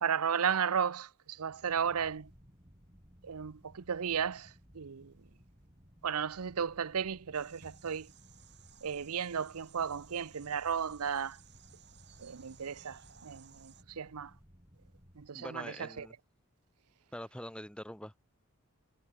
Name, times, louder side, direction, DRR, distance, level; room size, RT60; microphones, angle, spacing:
voice 1, 0.0-2.3 3.2-5.1 6.0-8.1 8.8-11.4 12.2-14.3 15.2-16.1, right 7 dB, 85° right, 0.6 m, -34 dB
sound 1, 1.3-15.3, equal, 25° right, 5.4 m, -60 dB
sound 2, 7.3-13.8, right 7 dB, 50° right, 4.9 m, -59 dB
voice 2, 15.3-16.1 17.1-18.2, equal, 5° left, 1.5 m, -44 dB
head